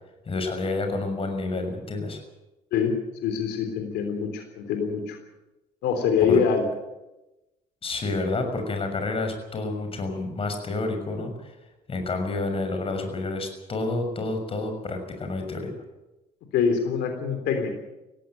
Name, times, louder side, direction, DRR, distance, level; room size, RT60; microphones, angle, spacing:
voice 1, 0.2-2.2 6.2-6.4 7.8-11.5 11.9-15.7, left 2 dB, 35° left, 5 dB, 6.4 m, -29 dB
voice 2, 3.2-5.2 5.8-6.7 16.5-17.8, left 6 dB, 85° left, 5 dB, 3.5 m, -24 dB
18.0 x 17.0 x 9.2 m, 1.0 s
cardioid pair, 110°, 17 cm